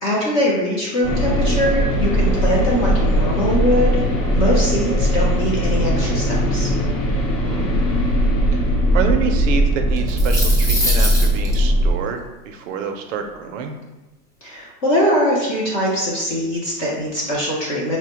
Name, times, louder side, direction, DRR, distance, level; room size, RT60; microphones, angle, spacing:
voice 1, 0.0-4.0 4.3-6.7 14.4-18.0, equal, 25° left, -5 dB, 0.3 m, -22 dB
sound 1, 1.0-11.9, equal, 50° left, 0.9 m, -19 dB
voice 2, 7.4-7.7 8.5-8.6 8.9-13.8, right 6 dB, 55° right, 5 dB, 0.5 m, -27 dB
sound 2, 10.0-11.5, left 1 dB, 5° left, 0.9 m, -24 dB
4.2 x 2.1 x 2.8 m, 1.1 s
hypercardioid pair, 125°, 49 cm